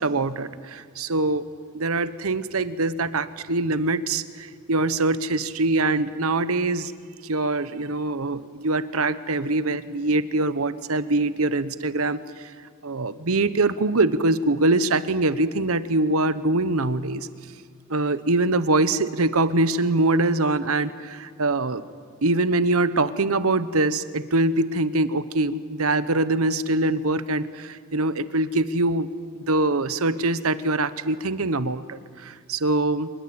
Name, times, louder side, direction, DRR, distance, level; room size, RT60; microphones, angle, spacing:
voice 1, 0.0-1.4 1.7-6.9 7.2-12.5 12.8-17.3 17.9-21.8 22.2-29.1 29.3-33.1, right 2 dB, 70° right, 14 dB, 1.0 m, -23 dB
24.5 x 21.0 x 8.8 m, 2.1 s
head